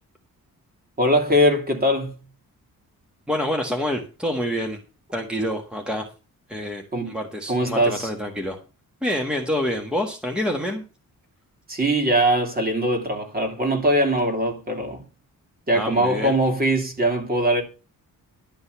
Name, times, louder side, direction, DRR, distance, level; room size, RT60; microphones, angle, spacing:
voice 1, 1.0-2.2 6.9-7.1 7.5-8.1 11.7-15.0 15.7-17.6, right 1 dB, 25° right, 2.9 m, -21 dB
voice 2, 3.3-4.8 5.1-6.0 6.5-8.6 9.0-10.8 15.7-16.3, equal, 5° right, 1.5 m, -27 dB
11.5 x 5.4 x 8.1 m
wide cardioid pair, 130°, 34 cm